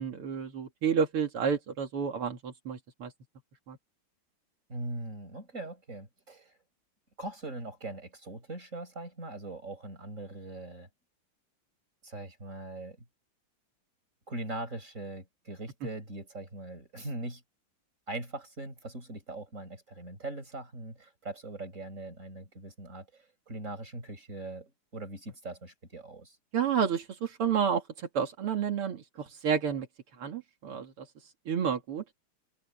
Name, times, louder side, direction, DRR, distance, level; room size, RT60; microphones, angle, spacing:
voice 1, 0.0-3.1 3.7-3.8 26.5-27.8 28.1-29.9 30.2-31.1 31.5-32.0, right 7 dB, 85° right, 2.9 m, -30 dB
voice 2, 4.7-6.5 7.2-10.9 12.0-13.0 14.3-17.4 18.1-26.4, right 2 dB, 35° right, 7.8 m, -41 dB
omnidirectional pair, 2.4 m